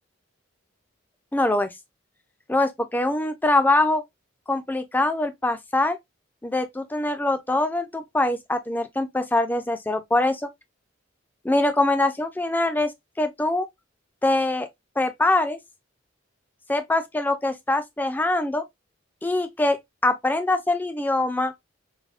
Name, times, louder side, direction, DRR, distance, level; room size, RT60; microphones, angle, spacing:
voice 1, 1.3-1.7 2.5-4.0 4.5-6.0 6.4-10.3 11.4-12.9 13.2-13.7 14.2-14.7 15.0-15.6 16.7-18.6 19.2-19.8 20.0-21.5, left 2 dB, 10° left, 0.3 m, -23 dB
4.7 x 2.0 x 2.3 m
head